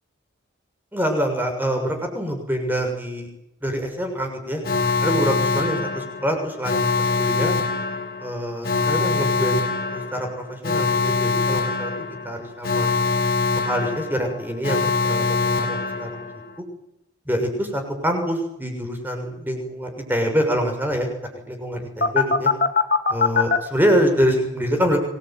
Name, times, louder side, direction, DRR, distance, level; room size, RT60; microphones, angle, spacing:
voice 1, 0.9-3.3 3.6-4.6 5.0-7.5 8.2-11.9 12.2-12.9 13.6-16.2 17.3-22.5 23.1-25.0, equal, 10° right, 4 dB, 6.7 m, -25 dB
Alarm, 4.6-16.5 22.0-23.6, left 4 dB, 45° left, 2.8 m, -23 dB
26.0 x 21.0 x 9.5 m, 0.82 s
head